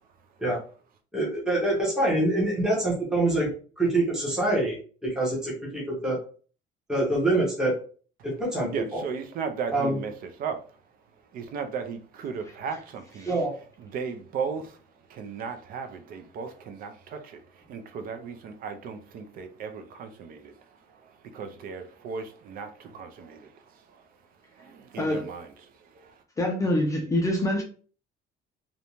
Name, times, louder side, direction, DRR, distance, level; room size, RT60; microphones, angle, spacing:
voice 1, 1.1-3.5 3.8-4.8 5.0-6.2 6.9-7.7 8.2-9.0 9.7-10.0 13.3-13.5, right 2 dB, 5° right, 0.7 m, -25 dB
voice 2, 8.7-10.6 11.3-13.4 13.8-14.8 15.1-24.1 24.5-26.2, right 6 dB, 50° right, 0.4 m, -36 dB
voice 3, 26.4-27.6, left 1 dB, 15° left, 0.4 m, -25 dB
2.5 x 2.1 x 2.9 m
cardioid pair, 175°, 19 cm